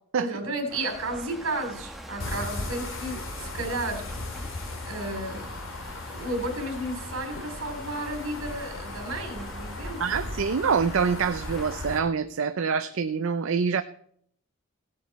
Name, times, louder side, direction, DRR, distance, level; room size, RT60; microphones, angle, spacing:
voice 1, 0.2-4.0 4.5-5.5 6.1-10.2, right 1 dB, 90° right, 5 dB, 3.1 m, -33 dB
sound 1, 0.7-11.8, equal, ahead, 1.0 m, -43 dB
sound 2, 2.2-12.0, left 2 dB, 75° left, 2.4 m, -37 dB
voice 2, 10.0-13.8, right 6 dB, 75° right, 10 dB, 0.5 m, -26 dB
17.0 x 8.6 x 4.1 m, 0.65 s
head